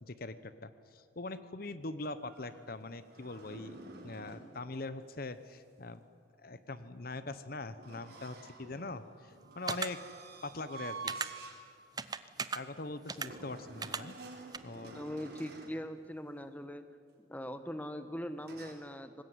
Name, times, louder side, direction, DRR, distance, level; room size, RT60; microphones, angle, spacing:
voice 1, 0.0-6.0 6.4-10.0 10.4-11.2 12.5-14.2 14.6-15.0, left 2 dB, 50° left, 13 dB, 0.9 m, -42 dB
sound 1, 2.2-4.5 7.8-11.6 12.1-12.2 13.2-15.8 18.4-18.7, right 3 dB, 55° right, 4.4 m, -49 dB
sound 2, 9.7-9.9 11.1-11.3 12.0-12.6 13.1-13.3 13.8-14.0 14.5-14.6, right 5 dB, 20° right, 0.7 m, -35 dB
voice 2, 14.9-16.9 17.3-19.2, equal, 10° left, 10 dB, 1.2 m, -41 dB
24.5 x 20.0 x 9.6 m, 2.2 s
head